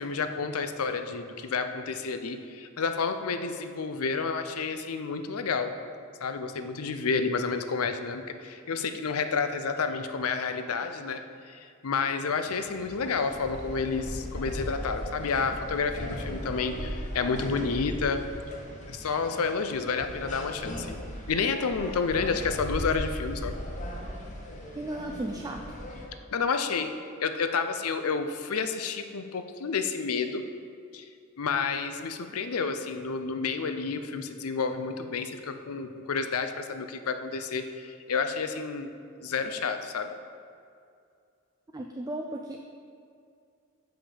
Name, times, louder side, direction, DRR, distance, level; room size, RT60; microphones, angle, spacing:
voice 1, 0.0-5.7 6.2-11.2 11.5-18.2 18.9-21.0 21.3-23.5 26.3-26.9 27.2-30.4 30.9-31.0 31.4-38.9 39.2-40.2, left 5 dB, 85° left, 8 dB, 0.6 m, -30 dB
sound 1, 12.5-26.1, equal, 35° left, 0.9 m, -38 dB
voice 2, 24.8-25.6 41.7-42.6, right 1 dB, 15° right, 2 dB, 0.3 m, -35 dB
5.7 x 5.3 x 6.8 m, 2.4 s
head